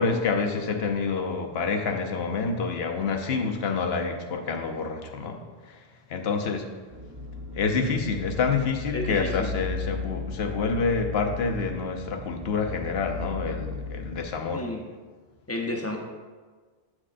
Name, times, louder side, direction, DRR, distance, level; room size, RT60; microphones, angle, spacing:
voice 1, 0.0-5.4 5.7-6.7 7.5-14.7, left 4 dB, 70° left, 4 dB, 0.9 m, -28 dB
sound 1, 6.9-14.2, left 3 dB, 30° right, 0.4 m, -36 dB
voice 2, 8.9-9.5 14.5-14.8 15.5-16.0, left 1 dB, 15° left, 0 dB, 0.6 m, -31 dB
8.7 x 6.1 x 2.5 m, 1.4 s
omnidirectional pair, 1.1 m